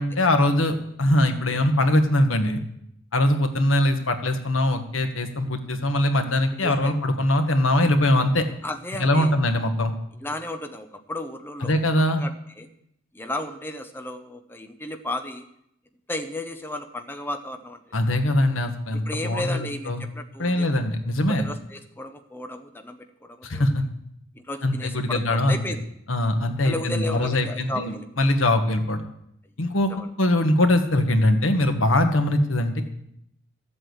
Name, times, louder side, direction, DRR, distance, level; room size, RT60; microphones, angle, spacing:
voice 1, 0.0-2.6 3.1-8.5 9.0-9.9 11.6-12.2 17.9-20.0 20.4-21.5 23.4-23.8 24.6-25.6 26.1-29.1 29.6-32.8, left 1 dB, 85° left, 6 dB, 1.5 m, -22 dB
voice 2, 6.6-6.9 8.6-9.3 10.2-11.9 12.2-12.7 13.1-15.4 16.1-18.0 19.1-20.8 21.4-23.7 24.4-25.8 26.6-28.1 29.9-30.1, left 1 dB, 10° left, 6 dB, 0.8 m, -34 dB
13.5 x 7.8 x 7.9 m, 0.76 s
head